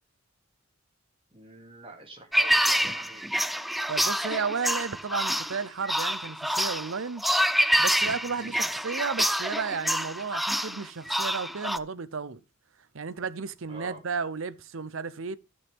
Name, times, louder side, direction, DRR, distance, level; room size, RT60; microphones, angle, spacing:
voice 1, 1.3-3.3 8.4-8.6 13.7-14.0, right 1 dB, 25° right, 2.8 m, -45 dB
sound 1, 2.3-11.8, equal, ahead, 0.4 m, -27 dB
voice 2, 3.9-7.2 7.8-12.4 12.9-15.4, right 5 dB, 70° right, 0.7 m, -33 dB
13.5 x 6.5 x 3.6 m
head